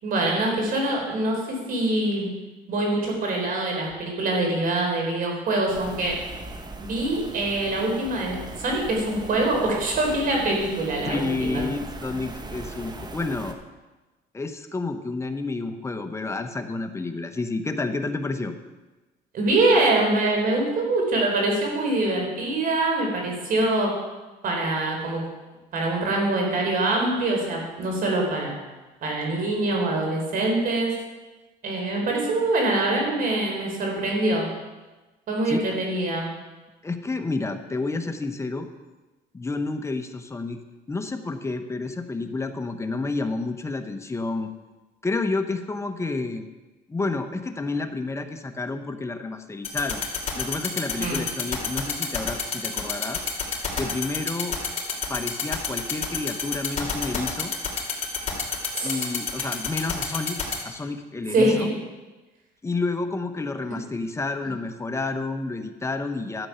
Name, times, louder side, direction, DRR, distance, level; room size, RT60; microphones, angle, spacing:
voice 1, 0.0-2.3 2.7-6.2 6.8-11.6 19.3-23.9 24.4-25.2 25.7-28.6 29.0-30.9 31.6-34.5 35.3-36.3 51.0-51.2 58.7-59.0 61.3-61.7, right 2 dB, 55° right, 0 dB, 3.6 m, -24 dB
sound 1, 5.7-13.5, right 2 dB, 25° right, 1.1 m, -39 dB
voice 2, 11.0-13.6 14.3-18.5 35.4-35.8 36.8-38.7 39.3-40.6 40.9-44.5 45.0-46.5 46.9-50.1 50.3-53.3 53.8-54.6 55.1-57.5 58.8-61.7 62.6-66.5, left 3 dB, 15° left, 7 dB, 1.0 m, -30 dB
sound 2, 49.6-60.5, left 7 dB, 40° left, 3.0 m, -27 dB
12.0 x 7.9 x 5.7 m, 1.2 s
cardioid pair, 110°, 17 cm